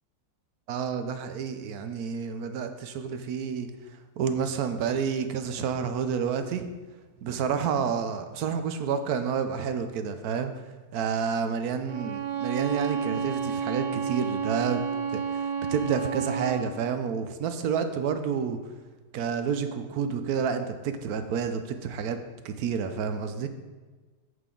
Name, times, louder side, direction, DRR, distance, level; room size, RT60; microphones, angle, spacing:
voice 1, 0.7-3.7 4.2-6.6 7.2-10.6 10.9-18.6 19.1-22.2 22.4-23.5, right 6 dB, 65° right, 9 dB, 1.0 m, -29 dB
Bowed string instrument, 11.9-16.7, right 6 dB, 85° right, 1.5 m, -30 dB
8.0 x 7.8 x 3.8 m, 1.3 s
omnidirectional pair, 2.0 m